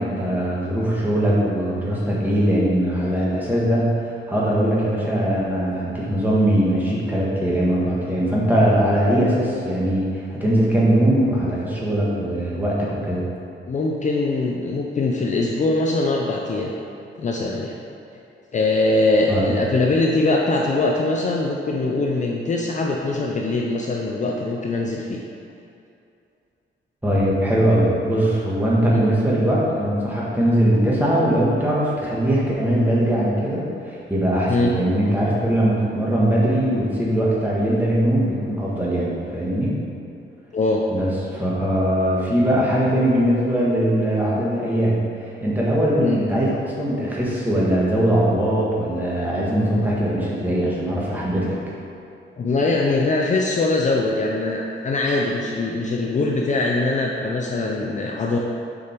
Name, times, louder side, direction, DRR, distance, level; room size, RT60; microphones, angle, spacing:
voice 1, 0.0-3.9 4.3-13.2 19.3-19.5 27.0-39.7 40.9-45.0 45.4-51.6, right 1 dB, 10° right, -6 dB, 1.5 m, -21 dB
voice 2, 13.7-16.7 17.2-17.7 18.5-25.2 28.9-29.0 34.5-34.7 40.5-40.8 46.0-46.2 52.4-58.4, left 2 dB, 35° left, -1 dB, 0.5 m, -22 dB
7.0 x 5.1 x 4.5 m, 2.6 s
wide cardioid pair, 160°, 21 cm